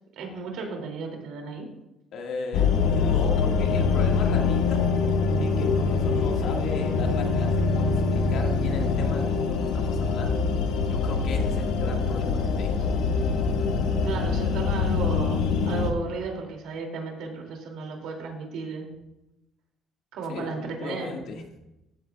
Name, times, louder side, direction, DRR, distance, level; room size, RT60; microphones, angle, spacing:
voice 1, 0.2-1.7 14.0-18.9 20.1-21.2, right 4 dB, 75° right, 2 dB, 2.4 m, -34 dB
voice 2, 2.1-4.9 5.4-10.5 10.9-12.9 20.3-21.4, left 3 dB, 60° left, 2 dB, 1.6 m, -36 dB
sound 1, 2.5-15.9, left 4 dB, 85° left, 1.2 m, -24 dB
14.5 x 8.7 x 2.3 m, 0.92 s
cardioid pair, 145°, 0 cm